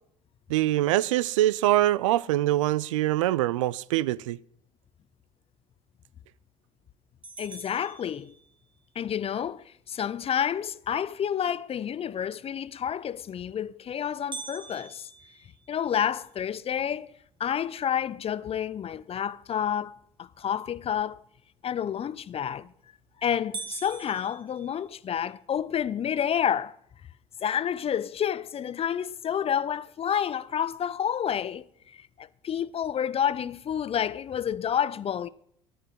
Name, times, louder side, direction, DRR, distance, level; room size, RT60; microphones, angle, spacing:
voice 1, 0.5-4.4, right 15 dB, 75° right, 0.5 m, -24 dB
sound 1, 7.2-8.8 14.3-16.5 17.0-17.1 17.6-17.7 18.3-18.7 22.3-22.7 23.1-23.2 23.5-25.3, right 4 dB, 30° right, 1.4 m, -43 dB
voice 2, 7.4-8.3 9.0-15.1 15.7-17.1 17.4-21.2 21.6-22.7 23.2-26.7 27.4-35.3, left 9 dB, 35° left, 0.7 m, -29 dB
12.0 x 9.9 x 8.2 m
hypercardioid pair, 60°, 16 cm